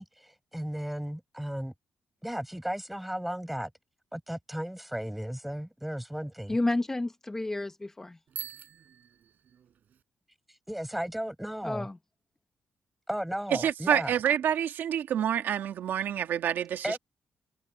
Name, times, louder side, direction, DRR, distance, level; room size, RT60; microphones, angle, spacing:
voice 1, 0.0-1.7 2.2-3.7 4.1-6.6 10.7-11.9 13.1-14.1 16.8-17.0, equal, 5° right, 5.1 m, -35 dB
voice 2, 6.5-8.2 11.6-12.0, left 2 dB, 15° left, 0.8 m, -30 dB
Bicycle bell, 8.3-10.0, right 8 dB, 60° right, 4.4 m, -44 dB
voice 3, 13.5-17.0, right 9 dB, 80° right, 2.0 m, -27 dB
wide cardioid pair, 155°, 3 cm